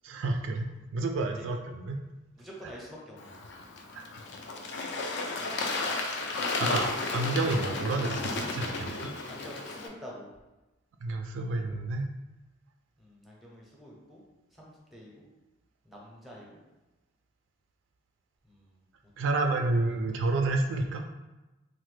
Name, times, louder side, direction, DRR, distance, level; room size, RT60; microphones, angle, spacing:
voice 1, 0.0-2.0 2.6-2.7 3.9-4.1 6.6-9.1 11.0-12.1 19.2-21.0, right 2 dB, 70° right, 4 dB, 0.3 m, -30 dB
voice 2, 2.3-3.3 9.3-10.3 13.0-14.2 14.6-15.2 15.8-16.6 18.5-18.7 19.2-19.3 19.6-19.8, equal, ahead, -4 dB, 0.6 m, -47 dB
Bird / Water, 3.2-9.9, left 3 dB, 60° left, 0.4 m, -33 dB
3.1 x 2.1 x 3.1 m, 1.1 s
head